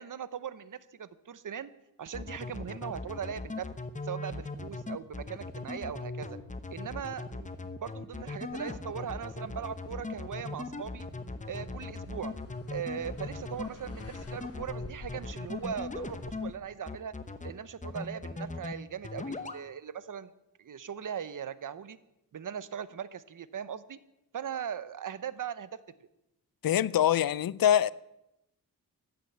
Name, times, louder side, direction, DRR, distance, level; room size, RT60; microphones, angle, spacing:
voice 1, 0.0-1.7 2.0-3.7 4.0-6.4 6.7-11.1 11.4-12.3 12.7-17.1 17.4-20.3 20.6-22.0 22.3-24.0 24.3-25.7, right 8 dB, 60° right, 0.8 m, -39 dB
sound 1, 2.1-16.5 16.9-17.5 17.8-18.7 19.0-19.6, left 3 dB, 20° left, 0.9 m, -38 dB
sound 2, 8.5-16.6, left 3 dB, 40° left, 1.2 m, -50 dB
voice 2, 26.6-27.9, left 10 dB, 70° left, 0.5 m, -24 dB
14.5 x 9.4 x 8.0 m
wide cardioid pair, 140°, 36 cm